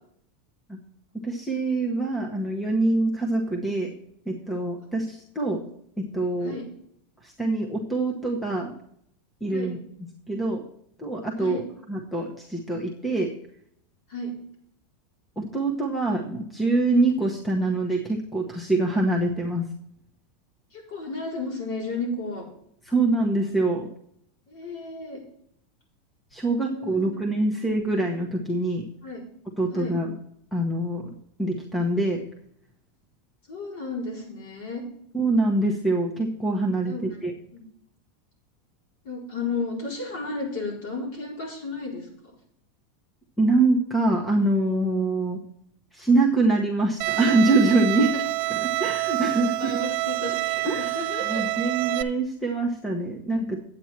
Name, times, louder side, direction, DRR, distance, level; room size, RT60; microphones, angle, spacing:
voice 1, 1.1-3.9 4.3-5.6 6.0-6.6 7.2-8.7 9.4-9.8 10.3-10.6 11.0-11.6 11.9-13.3 15.4-19.7 22.9-23.9 26.3-28.8 29.6-30.1 30.5-31.0 31.4-32.2 35.1-37.3 43.4-45.4 45.9-48.1 48.8-49.7 50.6-50.9 51.3-53.6, right 2 dB, 5° left, 2 dB, 1.0 m, -24 dB
voice 2, 20.7-22.4 24.5-25.2 26.5-27.2 27.4-27.5 29.0-29.2 29.7-30.0 33.5-34.8 36.9-37.2 37.5-37.6 39.0-42.3 48.0-48.2 49.6-51.5, left 3 dB, 55° left, -1 dB, 4.6 m, -33 dB
Bowed string instrument, 47.0-52.0, right 20 dB, 45° right, 0.5 m, -27 dB
9.7 x 8.6 x 4.5 m, 0.69 s
supercardioid pair, 175°, 0 cm